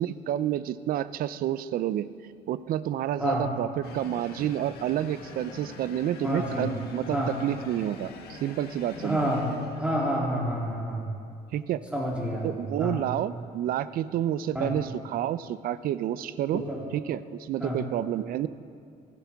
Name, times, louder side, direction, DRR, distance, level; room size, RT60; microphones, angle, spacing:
voice 1, 0.0-2.1 2.5-9.3 11.5-11.8 12.4-16.6 16.9-18.5, right 11 dB, 60° right, 16 dB, 0.4 m, -29 dB
sound 1, 3.8-10.1, left 5 dB, 70° left, 1.4 m, -45 dB
voice 2, 6.2-6.7 7.1-7.3 9.0-9.5 9.8-11.1 11.9-12.5 12.8-13.0 14.5-14.7 16.5-16.8 17.6-17.8, equal, 5° right, -4 dB, 3.0 m, -28 dB
16.0 x 12.0 x 3.5 m, 2.3 s
cardioid pair, 110°, 17 cm